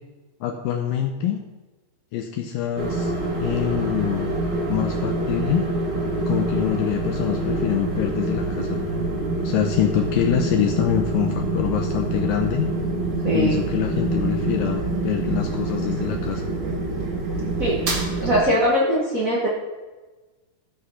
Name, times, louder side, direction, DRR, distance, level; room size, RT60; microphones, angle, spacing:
voice 1, 0.4-1.4 2.1-3.1 3.4-4.3 4.7-5.7 6.3-8.8 9.4-12.7 13.3-16.5, left 10 dB, 75° left, 3 dB, 2.3 m, -25 dB
sound 1, 2.8-18.4, right 2 dB, 45° right, 2.3 m, -26 dB
voice 2, 13.2-13.6 17.6-17.8 18.2-19.5, equal, 75° right, -4 dB, 0.7 m, -21 dB
15.0 x 6.3 x 5.6 m, 1.2 s
omnidirectional pair, 4.2 m